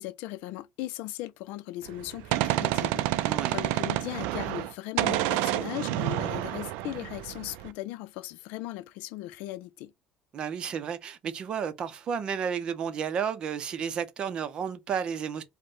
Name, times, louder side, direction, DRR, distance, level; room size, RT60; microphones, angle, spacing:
voice 1, 0.0-9.9, left 15 dB, 80° left, 0.4 m, -38 dB
Gunshot gunfire, 1.9-4.7 5.0-7.7, right 14 dB, 85° right, 0.4 m, -29 dB
voice 2, 10.3-15.4, right 7 dB, 35° right, 0.6 m, -32 dB
5.1 x 2.1 x 3.6 m
cardioid pair, 165°, 3 cm